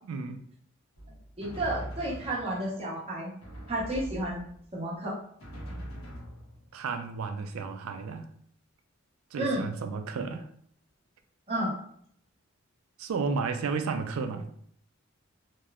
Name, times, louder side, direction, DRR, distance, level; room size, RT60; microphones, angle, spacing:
voice 1, 0.1-0.4 6.7-8.3 9.3-10.5 13.0-14.5, right 4 dB, 80° right, 8 dB, 0.3 m, -32 dB
Drum, 0.9-2.8 3.4-4.7 5.4-6.9, equal, 85° left, 0.8 m, -42 dB
voice 2, 1.4-3.3 3.7-4.4 4.7-5.2 9.4-9.7 11.5-11.7, right 1 dB, 30° right, -5 dB, 0.8 m, -31 dB
2.9 x 2.0 x 2.3 m, 0.64 s
head